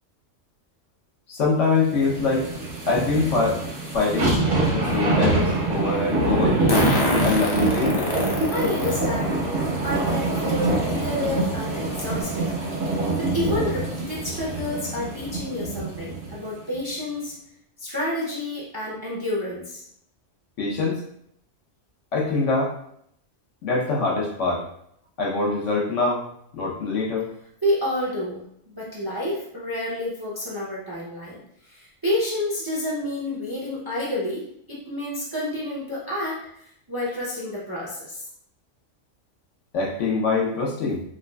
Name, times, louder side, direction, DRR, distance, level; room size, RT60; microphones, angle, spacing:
voice 1, 1.3-2.5 2.9-3.6 3.9-6.6 7.2-8.1 20.6-21.0 22.1-22.7 23.6-24.6 25.2-26.2 26.5-27.3 39.7-41.0, left 3 dB, 70° left, -2 dB, 1.1 m, -24 dB
sound 1, 1.9-16.3 16.8-16.9, right 2 dB, 70° right, 1.1 m, -25 dB
Fart, 3.9-4.0 6.7-9.0 9.6-9.7 11.0-11.1 11.5-11.6 12.0-12.2, left 1 dB, 25° left, 0.5 m, -25 dB
voice 2, 8.5-9.4 9.8-12.6 12.9-17.4 17.8-19.8 27.6-38.3, left 1 dB, 25° right, -6 dB, 0.5 m, -29 dB
4.8 x 2.3 x 2.2 m, 0.71 s
omnidirectional pair, 1.3 m